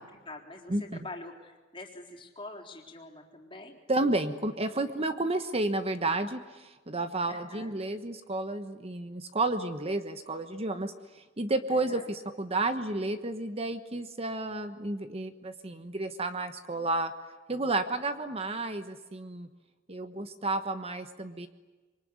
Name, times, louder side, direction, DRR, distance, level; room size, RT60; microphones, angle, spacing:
voice 1, 0.0-3.8 7.3-7.7 11.7-12.1, left 2 dB, 25° left, 2 dB, 3.9 m, -45 dB
voice 2, 3.9-17.1 17.5-19.5 19.9-21.5, right 2 dB, 30° right, 9 dB, 1.2 m, -31 dB
26.0 x 24.0 x 9.6 m, 1.2 s
head